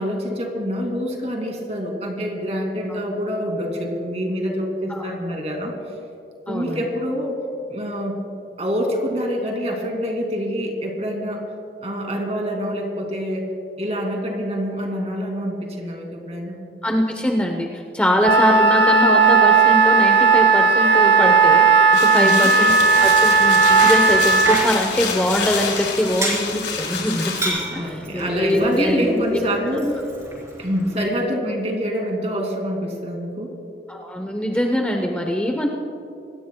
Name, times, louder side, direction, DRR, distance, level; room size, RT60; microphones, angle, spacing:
voice 1, 0.0-5.7 6.5-7.4 7.7-8.2 8.6-11.4 11.8-13.5 13.8-16.6 22.1-22.5 27.7-29.9 30.6-33.5, equal, 35° right, 2 dB, 2.4 m, -26 dB
voice 2, 6.5-6.9 16.8-22.7 23.0-29.4 29.8-30.0 33.9-35.7, equal, 5° left, 1 dB, 0.8 m, -23 dB
Wind instrument woodwind instrument, 18.2-24.6, right 4 dB, 80° right, 0.9 m, -15 dB
sound 1, 21.9-27.5, left 6 dB, 90° left, 4.1 m, -28 dB
Bicycle, 22.7-31.0, right 1 dB, 15° right, 4.0 m, -32 dB
25.5 x 18.0 x 2.3 m, 2.6 s
head